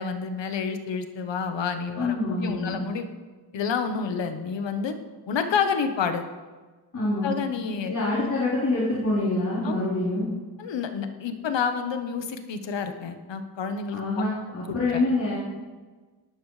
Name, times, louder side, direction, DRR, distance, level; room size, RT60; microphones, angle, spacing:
voice 1, 0.0-3.1 3.5-5.0 5.3-6.3 7.2-8.0 9.6-9.8 10.6-14.2 14.7-15.0, left 6 dB, 85° left, 7 dB, 1.2 m, -29 dB
voice 2, 2.0-2.8 6.9-7.3 7.9-10.3 13.9-15.4, left 2 dB, 45° left, -9 dB, 4.1 m, -26 dB
18.0 x 12.0 x 3.3 m, 1.3 s
wide cardioid pair, 95°, 43 cm